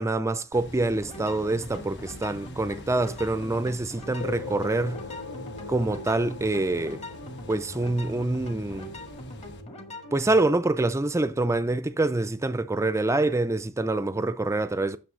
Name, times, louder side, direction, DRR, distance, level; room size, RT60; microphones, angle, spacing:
voice 1, 0.0-5.0 5.7-7.0 7.5-8.9 10.1-15.0, right 2 dB, 15° right, 0.4 m, -26 dB
sound 1, 0.5-9.6, left 2 dB, 60° left, 1.2 m, -46 dB
sound 2, 0.9-10.5, left 1 dB, 30° left, 1.7 m, -42 dB
sound 3, 4.2-12.9, left 4 dB, 75° left, 0.7 m, -43 dB
9.2 x 6.7 x 3.7 m
head